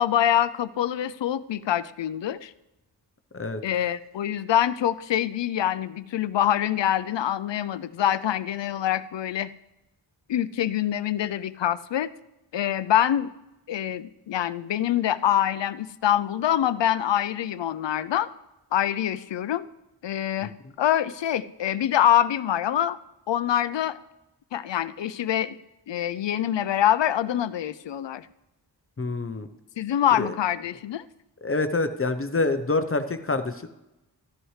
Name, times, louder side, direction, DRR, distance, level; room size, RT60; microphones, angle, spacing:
voice 1, 0.0-2.5 3.6-9.5 10.3-12.1 12.5-13.3 13.7-18.3 18.7-19.7 20.0-23.0 23.3-24.0 24.5-25.6 25.9-28.3 29.8-31.0, left 11 dB, 75° left, 15 dB, 0.6 m, -25 dB
voice 2, 29.0-29.5 30.2-30.3 31.4-33.7, left 3 dB, 30° left, 9 dB, 0.7 m, -26 dB
14.0 x 11.0 x 3.2 m, 0.94 s
wide cardioid pair, 70°, 43 cm